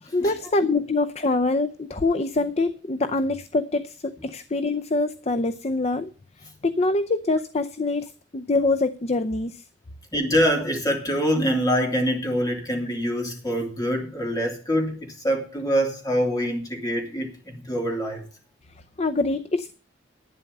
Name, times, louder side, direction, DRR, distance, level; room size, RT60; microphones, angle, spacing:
voice 1, 0.0-6.1 6.4-9.7 18.7-19.7, left 2 dB, 35° left, 0.6 m, -25 dB
voice 2, 10.1-18.2, equal, 20° left, 3.2 m, -25 dB
11.5 x 9.7 x 5.4 m
head